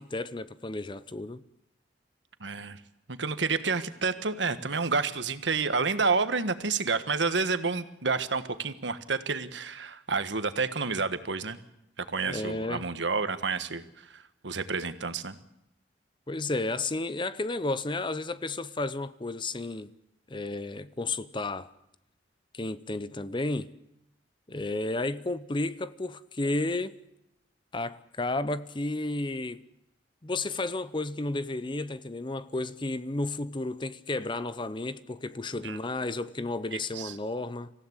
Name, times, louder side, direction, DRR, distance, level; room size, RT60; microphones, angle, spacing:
voice 1, 0.0-1.4 12.2-12.9 16.3-19.9 20.3-21.7 22.5-23.7 24.5-27.0 27.7-29.6 30.2-37.7, left 2 dB, 25° left, 0.7 m, -32 dB
voice 2, 2.4-2.8 3.1-11.6 12.0-15.3 35.6-35.8 36.7-37.1, right 4 dB, 75° right, 1.5 m, -29 dB
26.0 x 16.0 x 8.1 m
head